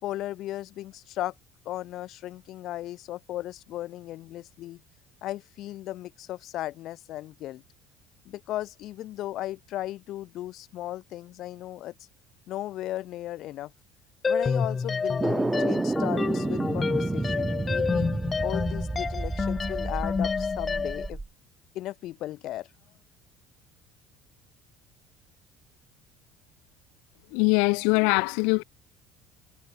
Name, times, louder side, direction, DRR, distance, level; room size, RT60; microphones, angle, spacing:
voice 1, 0.0-1.3 1.7-4.8 5.2-7.6 8.3-11.9 12.5-13.7 14.3-18.1 18.4-21.2 21.7-22.7, left 14 dB, 50° left, 3.6 m, -36 dB
sound 1, 14.2-21.1, left 5 dB, 20° left, 4.6 m, -29 dB
sound 2, 15.2-21.3, right 2 dB, 10° right, 0.9 m, -30 dB
voice 2, 27.3-28.6, left 37 dB, 85° left, 0.8 m, -22 dB
cardioid pair, 155°, 0 cm